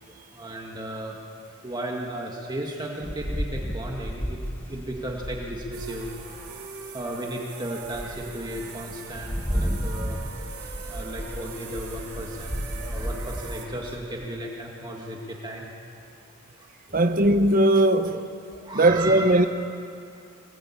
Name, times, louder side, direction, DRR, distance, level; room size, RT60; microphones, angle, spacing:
voice 1, 0.3-1.2 1.6-6.6 6.9-10.2 10.9-15.7 16.6-16.7 18.5-19.4, right 1 dB, 20° right, 1.9 m, -35 dB
Rain, 3.0-6.5 7.1-7.2 7.7-14.2, equal, 10° left, 1.4 m, -33 dB
sound 1, 5.7-13.7, right 5 dB, 80° right, 4.8 m, -42 dB
voice 2, 16.9-18.3 18.7-19.5, right 1 dB, 40° right, 1.2 m, -19 dB
24.5 x 19.5 x 8.6 m
head